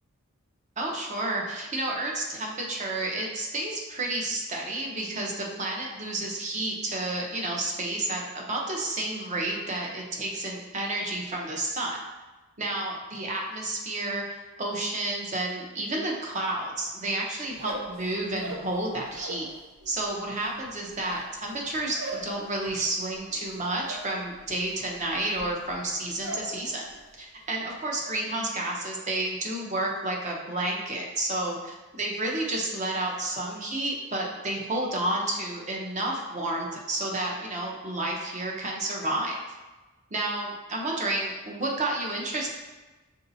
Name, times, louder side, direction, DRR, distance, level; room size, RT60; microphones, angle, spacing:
voice 1, 0.8-12.0 12.6-19.5 19.9-26.8 27.2-39.3 40.1-42.5, right 2 dB, 30° right, -1 dB, 0.7 m, -31 dB
sound 1, 17.5-19.5 19.8-26.6 26.9-27.4 27.7-28.2, right 1 dB, 65° right, 0.9 m, -41 dB
6.9 x 2.7 x 2.7 m, 1.2 s
head